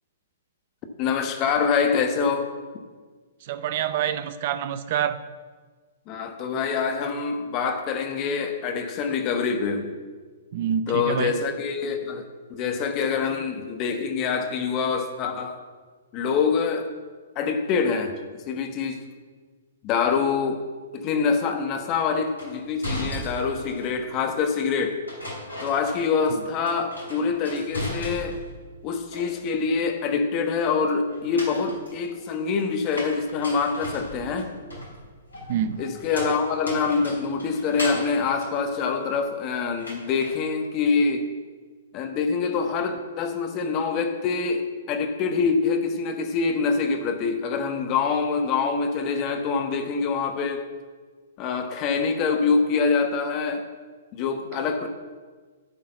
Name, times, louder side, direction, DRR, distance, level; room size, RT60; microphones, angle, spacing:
voice 1, 1.0-2.5 6.1-9.9 10.9-12.2 12.5-15.6 16.1-16.9 17.3-19.0 19.8-20.6 20.9-25.0 25.6-28.4 28.8-34.5 35.8-41.3 41.9-50.6 51.4-53.7 54.1-54.9, left 5 dB, 30° left, 5 dB, 1.1 m, -25 dB
voice 2, 3.4-5.2 10.5-11.3 35.5-35.8, right 9 dB, 45° right, 13 dB, 0.5 m, -26 dB
sound 1, 22.4-24.0 25.1-26.4 26.6-28.5 28.9-29.7 31.1-39.4 39.8-40.4, equal, 85° left, 2.9 m, -36 dB
11.5 x 3.9 x 7.8 m, 1.4 s
figure-of-eight pair, 115°, 0 cm